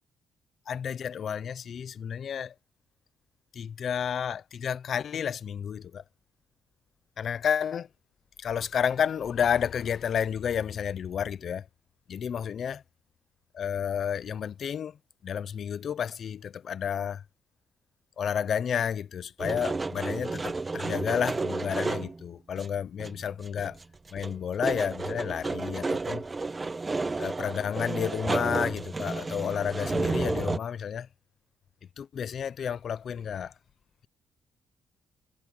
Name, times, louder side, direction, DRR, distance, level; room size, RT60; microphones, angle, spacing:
voice 1, 0.7-2.5 3.5-6.0 7.2-7.9 8.4-11.7 12.1-12.8 13.5-15.0 15.2-17.2 18.2-23.8 24.1-26.2 27.2-31.1 32.0-33.5, left 8 dB, 55° left, 0.8 m, -31 dB
sound 1, 19.4-22.2 22.6-22.7 23.0-23.8 24.1-30.6, right 3 dB, 20° right, 1.1 m, -32 dB
cardioid pair, 120°, 0 cm